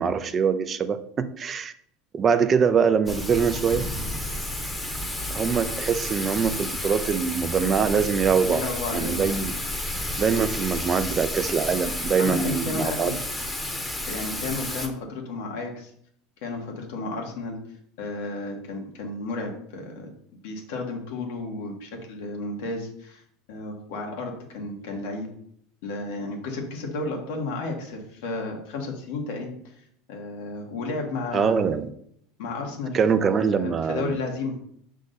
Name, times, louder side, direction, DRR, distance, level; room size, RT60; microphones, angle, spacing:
voice 1, 0.0-1.7 2.1-3.9 5.3-8.6 8.9-9.5 10.2-13.2 31.3-31.9 32.9-34.1, right 6 dB, 30° right, 11 dB, 0.4 m, -23 dB
Thunder / Rain, 3.1-14.9, left 1 dB, 10° left, 0.9 m, -31 dB
voice 2, 8.4-9.5 12.2-13.1 14.1-15.9 16.4-17.6 18.0-20.1 20.4-23.2 23.5-25.3 25.8-29.7 30.1-31.7 32.4-34.6, left 3 dB, 75° left, 1 dB, 1.6 m, -32 dB
6.5 x 3.7 x 4.0 m, 0.68 s
supercardioid pair, 125°, 0 cm